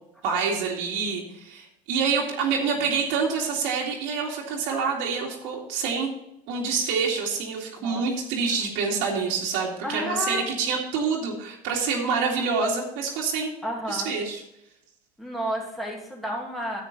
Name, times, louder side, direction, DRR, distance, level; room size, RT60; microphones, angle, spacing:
voice 1, 0.2-6.1 6.5-13.5 13.9-14.4, right 5 dB, 70° right, -2 dB, 2.4 m, -27 dB
voice 2, 9.8-10.5 13.6-14.1 15.2-16.8, equal, ahead, -2 dB, 2.9 m, -31 dB
9.9 x 8.8 x 4.0 m, 0.84 s
supercardioid pair, 90°, 20 cm